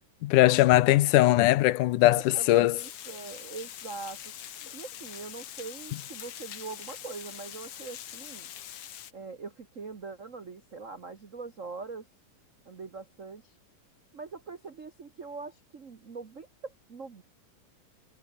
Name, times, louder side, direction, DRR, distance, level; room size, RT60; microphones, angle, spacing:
voice 1, 0.2-2.8, left 16 dB, 75° left, 2.3 m, -20 dB
voice 2, 2.1-4.3 4.6-8.5 9.1-12.1 12.6-13.6 14.1-17.2, right 4 dB, 85° right, 0.6 m, -42 dB
Water, 2.8-9.1, left 10 dB, 55° left, 1.8 m, -43 dB
omnidirectional pair, 3.8 m